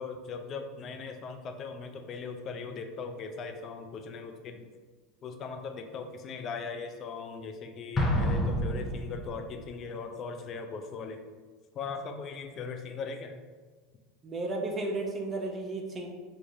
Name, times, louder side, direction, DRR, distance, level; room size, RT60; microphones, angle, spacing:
voice 1, 0.0-4.6 5.2-11.2 11.8-13.4, left 5 dB, 45° left, 6 dB, 0.4 m, -39 dB
Explosion, 8.0-9.6, equal, 25° left, 0.8 m, -29 dB
voice 2, 14.2-16.1, right 2 dB, 30° right, 1 dB, 0.6 m, -33 dB
4.6 x 2.5 x 2.6 m, 1.4 s
hypercardioid pair, 85°, 0 cm